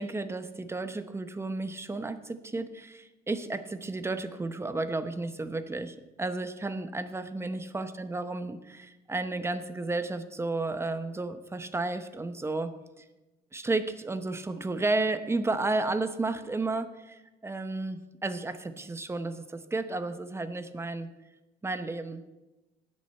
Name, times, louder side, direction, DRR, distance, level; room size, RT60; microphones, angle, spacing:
voice 1, 0.0-12.7 13.0-13.1 13.5-21.1 21.6-22.2, right 2 dB, 15° right, 11 dB, 0.8 m, -32 dB
18.0 x 6.4 x 4.4 m, 1.0 s
cardioid pair, 110°, 17 cm